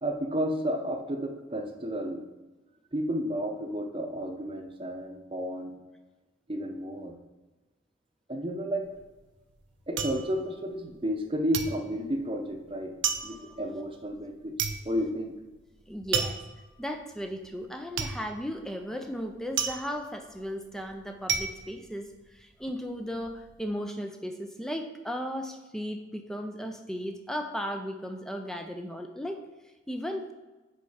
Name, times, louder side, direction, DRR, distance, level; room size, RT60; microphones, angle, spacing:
voice 1, 0.0-2.2 2.9-5.8 6.5-7.2 8.3-8.9 9.9-12.9 13.2-14.5 14.8-15.3, equal, 25° right, 3 dB, 0.7 m, -32 dB
sound 1, 8.8-11.2 11.5-22.7 23.0-23.6, right 7 dB, 70° right, 0.7 m, -34 dB
voice 2, 15.9-16.4 16.8-30.3, equal, 5° left, 5 dB, 0.4 m, -36 dB
6.9 x 4.5 x 4.9 m, 1.2 s
head